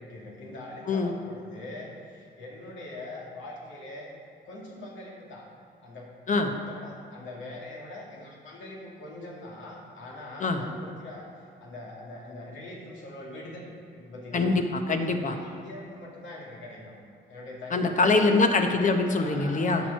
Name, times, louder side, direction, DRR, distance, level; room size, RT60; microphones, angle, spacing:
voice 1, 0.0-4.1 4.4-5.5 5.8-6.1 6.4-11.3 11.6-14.6 15.3-16.9 17.3-18.3 18.7-18.8 19.1-19.9, left 2 dB, 75° left, -3 dB, 2.3 m, -42 dB
voice 2, 14.9-15.3 17.7-19.8, left 3 dB, 40° left, 5 dB, 1.0 m, -23 dB
10.5 x 6.3 x 4.6 m, 2.5 s
cardioid pair, 90°, 20 cm